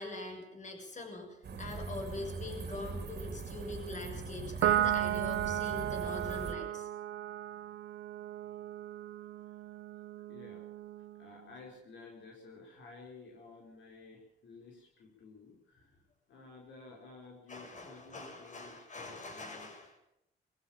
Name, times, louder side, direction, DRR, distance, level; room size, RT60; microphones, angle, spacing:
voice 1, 0.0-6.9 17.5-20.0, left 2 dB, 40° left, 3 dB, 7.1 m, -43 dB
sound 1, 1.4-6.5, right 4 dB, 55° right, 3.2 m, -41 dB
Piano, 4.6-11.3, right 12 dB, 75° right, 0.8 m, -35 dB
voice 2, 10.3-10.6 11.1-16.0 16.3-19.7, left 3 dB, 70° left, -1 dB, 5.0 m, -53 dB
22.5 x 15.5 x 7.4 m, 0.81 s
cardioid pair, 90°, 20 cm